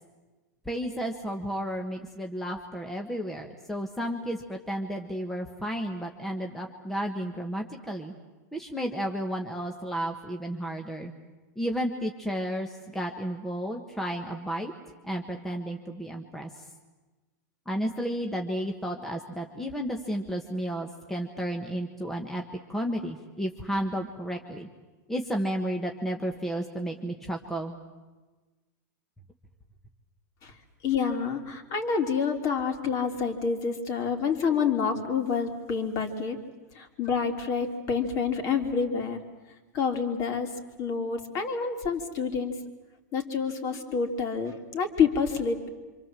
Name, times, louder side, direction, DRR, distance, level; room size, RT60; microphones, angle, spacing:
voice 1, 0.6-8.1 8.5-11.1 11.6-14.7 15.0-16.5 17.6-22.4 22.7-24.7 25.1-27.7, equal, 5° left, 2 dB, 1.5 m, -32 dB
voice 2, 30.8-36.4 36.8-39.2 39.7-40.5 40.8-42.6 43.1-45.7, left 6 dB, 35° left, 6 dB, 3.3 m, -28 dB
27.0 x 26.0 x 7.6 m, 1.2 s
supercardioid pair, 150°, 10 cm